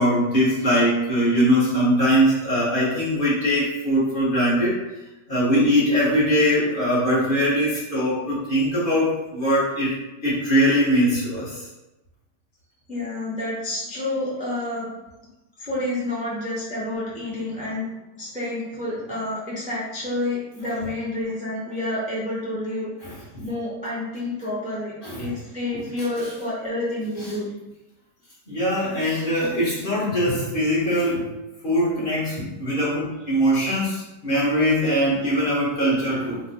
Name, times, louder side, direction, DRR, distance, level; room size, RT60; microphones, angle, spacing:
voice 1, 0.0-4.8 5.3-9.9 10.2-11.6 23.3-23.4 25.0-25.2 25.7-25.8 28.5-31.3 31.6-36.4, equal, 35° left, -8 dB, 1.1 m, -21 dB
voice 2, 12.9-14.9 15.6-17.9 18.2-22.9 23.4-27.5, left 1 dB, 10° right, -7 dB, 0.3 m, -29 dB
3.2 x 2.2 x 4.0 m, 1.0 s
omnidirectional pair, 1.8 m